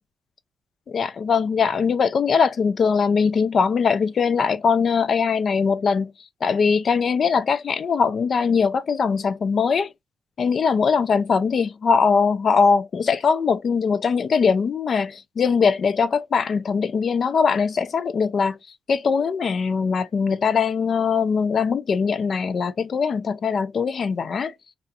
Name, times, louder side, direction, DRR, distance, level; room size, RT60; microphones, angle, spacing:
voice 1, 0.9-6.1 6.4-9.9 10.4-18.6 18.9-24.5, left 5 dB, 45° left, 0.3 m, -21 dB
2.4 x 2.2 x 2.7 m
cardioid pair, 140°, 0 cm